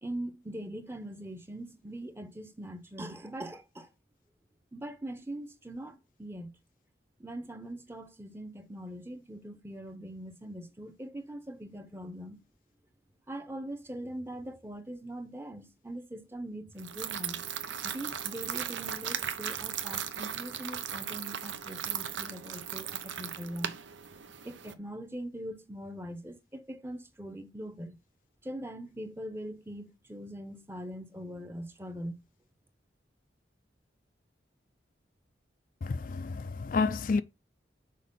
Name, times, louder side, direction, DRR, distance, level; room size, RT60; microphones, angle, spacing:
voice 1, 0.0-3.9 4.7-6.6 7.2-12.4 13.3-17.4 17.8-23.8 24.4-28.0 28.4-32.2, right 1 dB, 15° right, 0.8 m, -42 dB
sound 1, 16.8-24.7, right 8 dB, 85° right, 0.9 m, -37 dB
voice 2, 35.8-37.2, left 4 dB, 45° left, 0.4 m, -30 dB
6.6 x 4.5 x 5.4 m
head